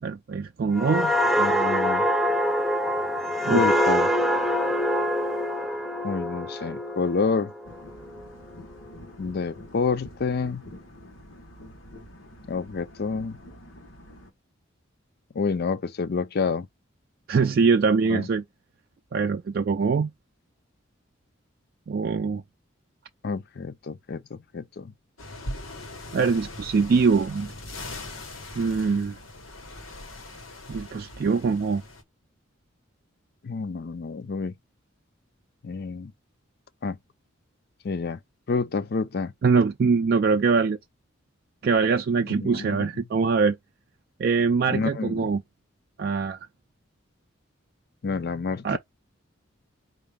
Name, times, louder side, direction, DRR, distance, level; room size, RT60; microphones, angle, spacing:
voice 1, 0.0-1.1 3.4-3.7 17.3-18.4 19.1-20.1 21.9-22.4 26.1-27.5 28.6-29.2 30.7-31.8 39.4-40.8 41.6-43.6 44.2-45.4 46.0-46.4 48.6-48.8, right 5 dB, 50° right, 0.3 m, -23 dB
sound 1, 0.8-8.2 8.6-8.9, equal, ahead, 0.6 m, -25 dB
voice 2, 1.4-2.0 3.5-4.1 6.0-7.5 9.2-10.6 12.5-13.4 15.4-16.7 18.1-18.3 23.2-24.9 33.4-34.5 35.6-36.1 36.8-37.0 37.8-38.2 38.5-39.3 42.4-42.8 44.7-45.2 48.0-48.8, left 4 dB, 50° left, 0.4 m, -28 dB
sound 2, 7.6-14.3, left 1 dB, 75° left, 1.1 m, -47 dB
sound 3, 25.2-32.0, left 1 dB, 90° left, 1.3 m, -40 dB
4.6 x 2.6 x 3.4 m
head